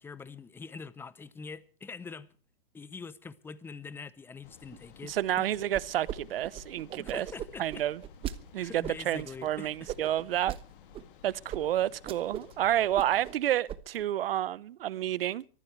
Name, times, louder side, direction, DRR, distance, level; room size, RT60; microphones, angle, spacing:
voice 1, 0.0-2.3 2.7-5.5 7.0-7.8 8.6-9.7, left 5 dB, 5° left, 0.8 m, -44 dB
sound 1, 4.4-13.3, left 7 dB, 60° left, 2.4 m, -55 dB
voice 2, 5.1-7.3 7.6-8.0 8.5-10.6 11.2-15.5, right 12 dB, 70° right, 1.1 m, -30 dB
sound 2, 5.7-6.2 6.4-8.4 8.8-9.2 9.9-10.6 10.9-11.0 11.5-11.6 11.9-12.5 12.8-13.4 13.7-14.0, right 11 dB, 20° right, 1.1 m, -38 dB
24.5 x 14.5 x 3.3 m
hypercardioid pair, 145°, 30 cm